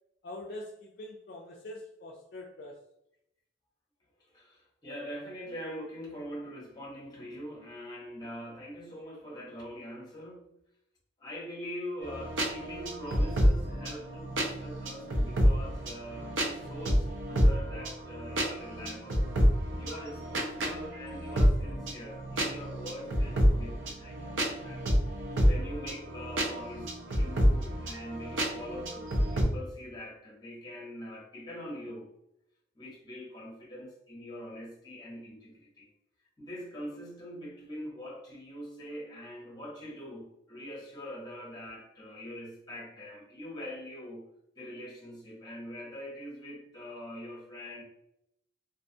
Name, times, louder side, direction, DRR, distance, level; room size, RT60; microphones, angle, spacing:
voice 1, 0.2-2.8, left 1 dB, 55° left, -1 dB, 0.3 m, -44 dB
voice 2, 4.3-10.4 11.2-19.3 19.8-24.9 25.4-32.1 32.7-35.9 36.4-44.2 44.6-47.8, equal, 20° left, -4 dB, 0.8 m, -43 dB
sound 1, 12.0-29.4, equal, 85° right, 0.6 m, -29 dB
2.4 x 2.2 x 2.7 m, 0.79 s
head